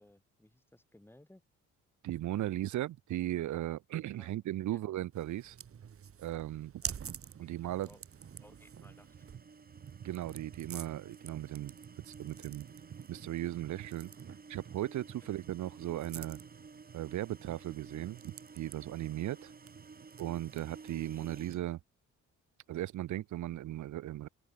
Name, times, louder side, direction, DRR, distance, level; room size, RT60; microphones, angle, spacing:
voice 1, 0.0-1.4 4.1-4.3 4.7-4.8 6.8-7.0 7.4-7.5 7.9-8.0 8.4-9.3, left 1 dB, 5° left, 3.5 m, -60 dB
voice 2, 2.0-5.6 6.2-6.7 7.4-7.9 10.0-11.8 12.1-12.7 13.1-14.1 14.5-16.4 16.9-19.5 20.2-21.8 22.7-24.3, right 13 dB, 70° right, 1.2 m, -37 dB
sound 1, 5.1-21.8, right 8 dB, 45° right, 2.2 m, -49 dB
sound 2, 7.7-21.6, right 4 dB, 30° right, 3.5 m, -54 dB
open air
cardioid pair, 90°, 30 cm